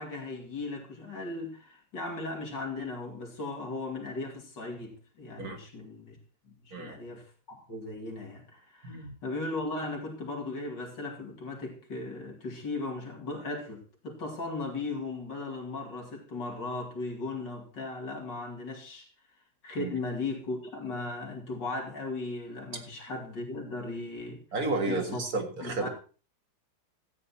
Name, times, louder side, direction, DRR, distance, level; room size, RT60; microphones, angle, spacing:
voice 1, 0.0-6.2 6.4-19.1 19.6-24.4 24.9-25.2 25.6-25.9, left 2 dB, 75° left, 3.4 m, -37 dB
voice 2, 8.8-9.1 19.8-19.9 24.5-25.9, right 3 dB, 55° right, 2.3 m, -32 dB
13.0 x 9.0 x 4.2 m
omnidirectional pair, 2.0 m